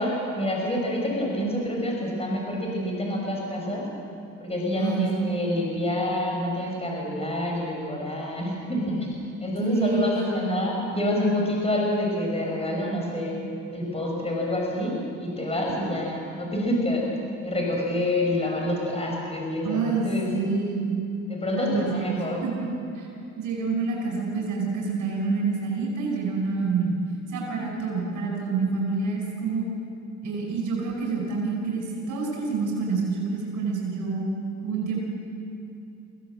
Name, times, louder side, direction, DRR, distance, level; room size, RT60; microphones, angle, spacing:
voice 1, 0.0-3.9 4.4-13.3 13.7-17.0 17.4-20.3 21.3-22.4, left 1 dB, 20° left, -1 dB, 6.3 m, -27 dB
voice 2, 4.8-5.1 9.6-10.1 19.6-21.0 21.6-21.9 22.4-23.1 23.4-26.9 27.3-29.7 30.2-34.3 34.6-35.0, right 4 dB, 85° right, -1 dB, 5.1 m, -27 dB
23.5 x 16.5 x 7.9 m, 2.6 s
cardioid pair, 90°, 30 cm